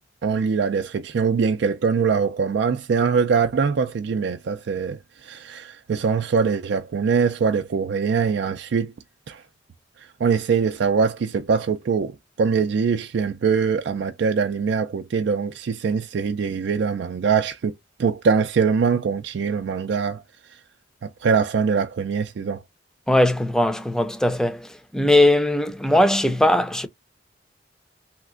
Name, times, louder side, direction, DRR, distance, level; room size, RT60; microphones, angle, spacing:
voice 1, 0.2-8.9 9.3-9.4 10.0-20.2 20.5-20.6 21.0-22.6, right 5 dB, 70° right, 0.4 m, -23 dB
voice 2, 23.1-24.7 24.9-26.9, left 1 dB, 5° left, 0.5 m, -19 dB
3.3 x 2.8 x 2.4 m
head